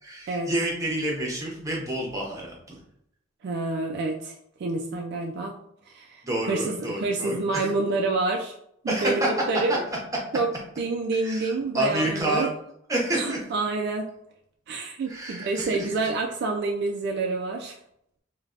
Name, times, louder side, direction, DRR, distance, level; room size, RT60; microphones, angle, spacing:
voice 1, 0.0-2.8 6.2-7.7 8.9-9.3 11.2-12.5 12.9-13.4 15.1-15.9, right 1 dB, 15° right, -2 dB, 0.7 m, -29 dB
voice 2, 3.4-5.6 5.9-8.5 8.8-9.8 10.3-10.5 10.8-12.5 13.1-14.1 14.7-17.8, right 3 dB, 55° right, 2 dB, 0.3 m, -28 dB
3.2 x 2.2 x 2.4 m, 0.71 s
head